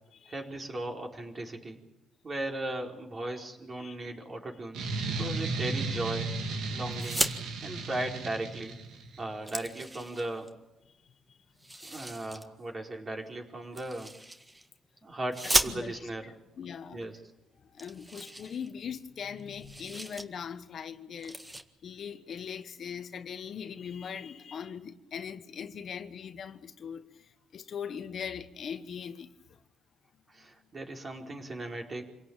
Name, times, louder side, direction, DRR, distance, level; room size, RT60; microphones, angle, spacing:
voice 1, 0.3-1.8 2.2-6.3 6.7-7.2 7.6-8.8 9.2-10.5 11.8-14.1 15.0-16.3 16.9-17.2 30.3-32.1, right 1 dB, 35° right, 4.8 m, -37 dB
sound 1, 4.7-9.2, right 3 dB, 80° right, 3.3 m, -34 dB
sound 2, 6.9-7.4 8.7-8.8 9.1-10.5 11.6-12.5 13.7-14.7 15.3-16.2 17.0-17.1 17.4-17.5 17.8-19.1 19.4-20.3 20.6-20.8 21.2-21.6, right 1 dB, 15° right, 1.8 m, -34 dB
voice 2, 15.7-16.1 16.6-17.0 17.6-21.4 21.8-29.6, left 7 dB, 55° left, 1.3 m, -40 dB
27.0 x 17.0 x 9.0 m
cardioid pair, 90°, 0 cm